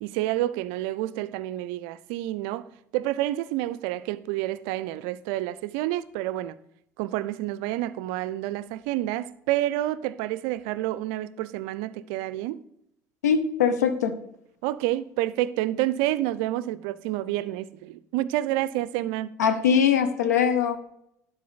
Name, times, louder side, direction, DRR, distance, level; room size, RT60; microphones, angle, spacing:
voice 1, 0.0-2.7 2.9-6.6 7.0-12.6 14.6-19.3, right 15 dB, 60° right, 0.4 m, -29 dB
voice 2, 13.2-14.1 19.4-20.8, left 7 dB, 75° left, 0.6 m, -22 dB
11.5 x 4.1 x 3.9 m
figure-of-eight pair, 60°, 9 cm